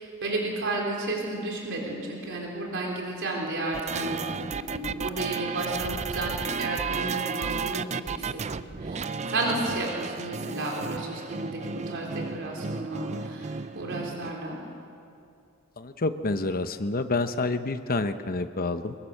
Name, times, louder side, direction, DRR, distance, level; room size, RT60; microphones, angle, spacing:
voice 1, 0.0-4.2 4.5-14.6, right 2 dB, 60° right, -1 dB, 3.8 m, -32 dB
sound 1, 3.7-14.3, right 5 dB, 30° right, 0.5 m, -33 dB
voice 2, 15.8-18.9, left 3 dB, 45° left, 9 dB, 0.9 m, -28 dB
23.5 x 22.0 x 6.6 m, 2.5 s
head